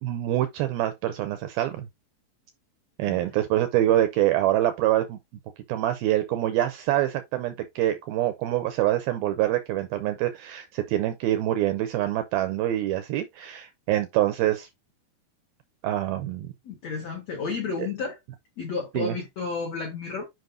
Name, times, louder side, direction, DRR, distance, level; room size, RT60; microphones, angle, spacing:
voice 1, 0.0-1.9 3.0-5.2 5.7-14.7 15.8-16.5 17.8-17.9 18.9-19.2, right 13 dB, 90° right, 2.1 m, -25 dB
voice 2, 16.6-18.2 18.6-20.2, left 4 dB, 75° left, 1.5 m, -32 dB
7.6 x 5.3 x 2.6 m
omnidirectional pair, 5.2 m